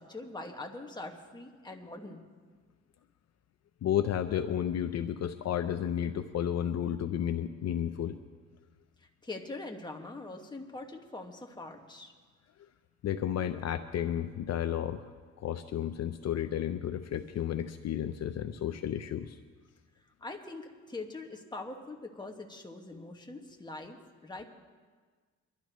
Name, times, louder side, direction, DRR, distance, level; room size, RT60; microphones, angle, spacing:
voice 1, 0.0-2.3 9.2-12.1 20.2-24.5, left 2 dB, 15° left, 2 dB, 1.7 m, -43 dB
voice 2, 3.8-8.2 13.0-15.0 15.4-19.4, left 10 dB, 60° left, 8 dB, 0.7 m, -32 dB
24.0 x 12.5 x 3.1 m, 1.5 s
cardioid pair, 90°, 30 cm